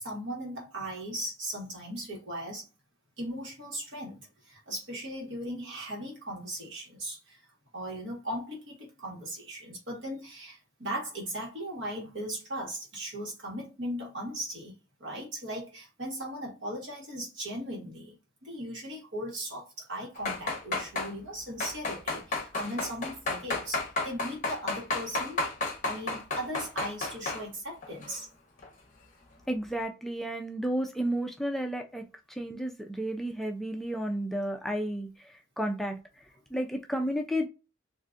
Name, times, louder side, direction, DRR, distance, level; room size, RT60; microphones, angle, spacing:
voice 1, 0.0-2.7 3.2-7.4 7.7-14.7 15.0-25.4 25.8-28.3, right 1 dB, 60° right, 1.4 m, -38 dB
sound 1, 20.2-21.1 21.6-27.4 27.8-28.2 28.6-28.7, left 2 dB, 40° left, 0.7 m, -32 dB
voice 2, 29.5-36.0 36.5-37.5, equal, ahead, 0.4 m, -32 dB
3.7 x 2.5 x 2.5 m
head